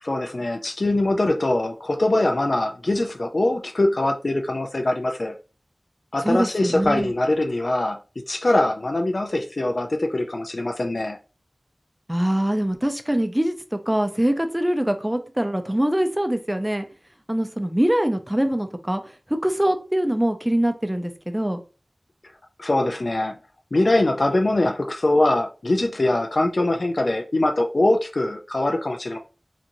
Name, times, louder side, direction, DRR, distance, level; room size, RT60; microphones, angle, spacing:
voice 1, 0.0-5.3 6.1-8.0 8.3-11.2 22.6-23.4 23.7-29.2, left 2 dB, 65° left, 0.3 m, -22 dB
voice 2, 6.2-7.1 12.1-16.9 17.3-19.0 19.4-21.6, right 1 dB, 10° right, 0.5 m, -23 dB
2.9 x 2.4 x 2.6 m
wide cardioid pair, 55°, 0 cm